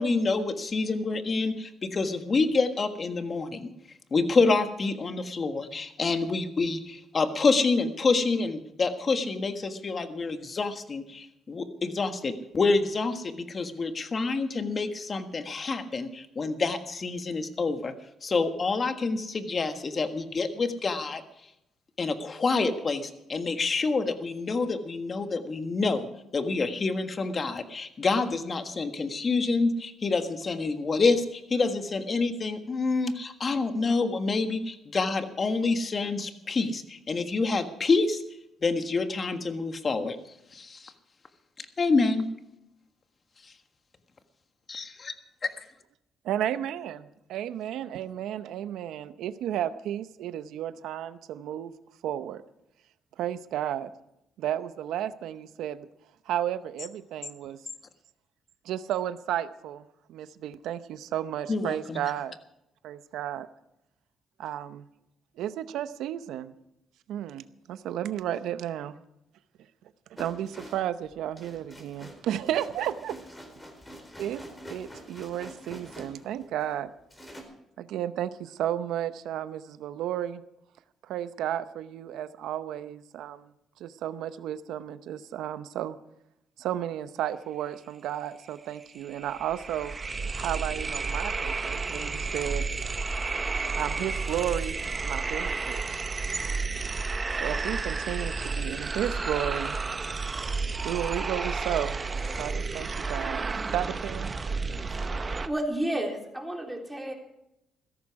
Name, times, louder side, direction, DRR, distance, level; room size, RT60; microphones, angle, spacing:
voice 1, 0.0-3.7 4.1-17.9 18.2-21.2 22.0-38.2 38.6-40.2 40.5-40.9 41.6-42.2 44.7-45.1 45.4-45.6 61.5-62.0, left 3 dB, 40° left, 8 dB, 1.6 m, -27 dB
voice 2, 46.2-51.7 52.0-52.4 53.2-53.9 54.4-55.9 56.3-57.6 58.6-62.4 62.8-63.5 64.4-64.9 65.4-66.5 67.1-69.0 70.1-73.2 74.2-74.4 74.7-76.9 77.8-80.4 81.0-83.5 83.8-86.0 86.6-89.9 90.3-92.7 93.8-94.8 95.0-96.0 97.4-99.8 100.8-102.0 102.4-104.3, right 11 dB, 85° right, 13 dB, 0.8 m, -33 dB
sound 1, 70.2-76.7 77.1-77.4, equal, 15° left, 4.3 m, -46 dB
sound 2, 88.5-88.6 88.8-105.5, right 4 dB, 30° right, 0.9 m, -31 dB
voice 3, 105.4-107.1, right 1 dB, 5° right, 1 dB, 3.7 m, -31 dB
16.0 x 14.0 x 4.8 m, 0.83 s
cardioid pair, 90°, 0 cm